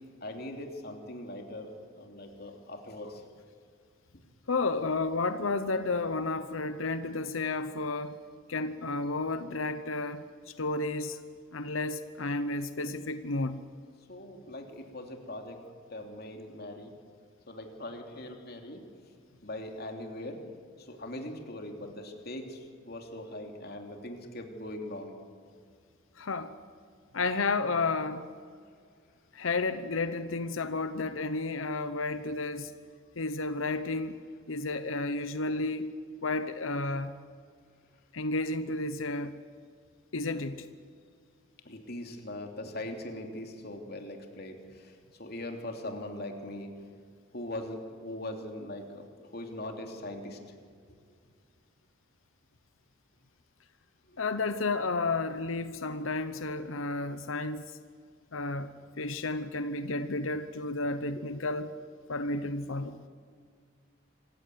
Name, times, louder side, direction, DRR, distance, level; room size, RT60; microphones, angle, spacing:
voice 1, 0.2-3.2 14.1-15.6 15.9-16.9 17.5-18.8 19.4-20.4 20.8-25.2 41.6-46.7 47.3-49.0 49.3-50.4 50.9-51.0 54.1-54.2 61.1-61.2, left 1 dB, 50° left, 3 dB, 3.0 m, -41 dB
voice 2, 4.5-8.2 8.5-11.2 11.5-13.6 26.2-26.5 27.1-28.3 29.3-32.7 33.2-34.2 34.5-35.9 36.2-37.1 38.1-39.3 40.1-40.7 54.2-57.6 58.3-58.7 59.0-61.7 62.1-63.0, left 3 dB, 85° left, 11 dB, 0.9 m, -32 dB
26.0 x 15.5 x 9.4 m, 2.1 s
head